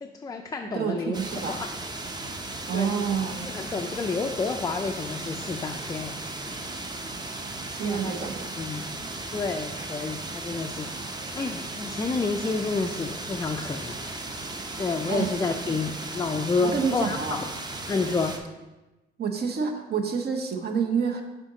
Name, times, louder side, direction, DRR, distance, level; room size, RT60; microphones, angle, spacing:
voice 1, 0.0-1.2 1.5-1.7 2.7-3.2 3.5-6.7 7.8-8.3 8.6-8.9 9.3-14.0 14.8-17.5 17.9-18.3, left 4 dB, 20° left, 3 dB, 0.3 m, -30 dB
voice 2, 0.7-1.6 2.7-3.5 7.7-8.6 15.1-15.3 16.7-17.4 19.2-21.2, right 6 dB, 55° right, 5 dB, 0.8 m, -28 dB
sound 1, 1.1-18.4, right 2 dB, 20° right, 0.6 m, -36 dB
6.2 x 3.9 x 3.9 m, 1.1 s
cardioid pair, 90°, 20 cm